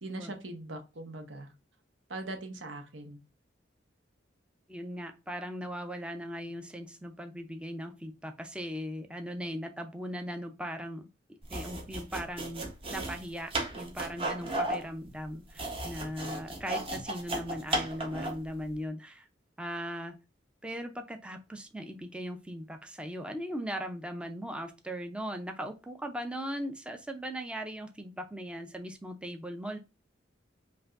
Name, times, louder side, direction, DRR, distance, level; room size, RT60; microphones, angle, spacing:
voice 1, 0.0-1.5 2.1-3.2, right 2 dB, 90° right, 5 dB, 1.1 m, -41 dB
voice 2, 4.7-11.1 11.5-19.3 19.6-20.1 20.6-29.8, equal, 5° right, 5 dB, 0.5 m, -39 dB
sound 1, 11.4-18.5, right 1 dB, 30° right, 0.9 m, -35 dB
5.4 x 2.6 x 2.5 m, 0.28 s
head